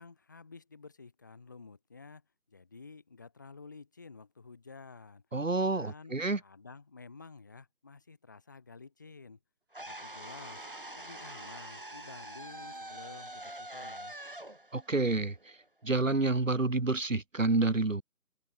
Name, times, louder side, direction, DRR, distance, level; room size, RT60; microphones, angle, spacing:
voice 1, 0.0-5.2 5.7-6.1 6.4-9.4 9.8-10.7 10.9-14.2, left 4 dB, 10° left, 3.4 m, -51 dB
voice 2, 5.3-6.4 14.7-15.6 15.8-18.0, right 3 dB, 55° right, 2.5 m, -29 dB
sound 1, 9.7-15.8, right 1 dB, 35° right, 1.2 m, -45 dB
sound 2, 10.1-14.5, right 6 dB, 15° right, 6.8 m, -59 dB
open air
figure-of-eight pair, 175°, 46 cm